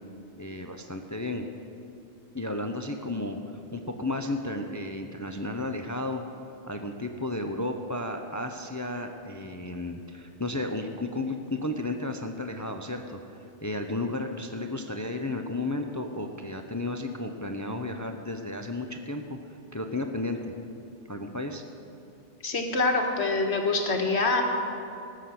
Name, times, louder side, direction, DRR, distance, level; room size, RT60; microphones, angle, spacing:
voice 1, 0.4-1.5 2.3-3.4 3.7-6.2 6.7-19.4 19.7-20.4 21.1-21.6, left 2 dB, 20° left, 5 dB, 0.6 m, -33 dB
voice 2, 22.4-24.4, left 3 dB, 65° left, 2 dB, 1.7 m, -25 dB
19.0 x 6.6 x 7.8 m, 2.6 s
omnidirectional pair, 1.2 m